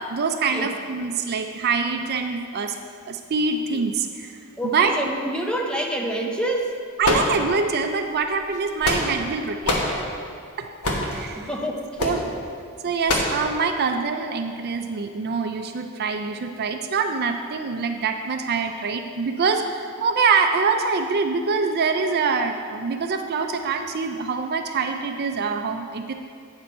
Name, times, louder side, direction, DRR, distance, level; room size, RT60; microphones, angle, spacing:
voice 1, 0.0-2.7 3.1-4.4 4.6-4.9 7.0-9.8 10.6-10.7 11.1-11.5 12.0-12.2 12.8-26.1, right 5 dB, 45° right, 5 dB, 0.4 m, -24 dB
voice 2, 4.6-6.8 11.4-12.3, right 1 dB, 5° left, 1 dB, 0.7 m, -27 dB
sound 1, 7.0-7.8 8.5-9.3 9.6-10.0 10.8-11.2 12.0-12.2 13.1-13.4, left 1 dB, 85° left, 1.2 m, -23 dB
8.9 x 6.8 x 4.3 m, 2.4 s
head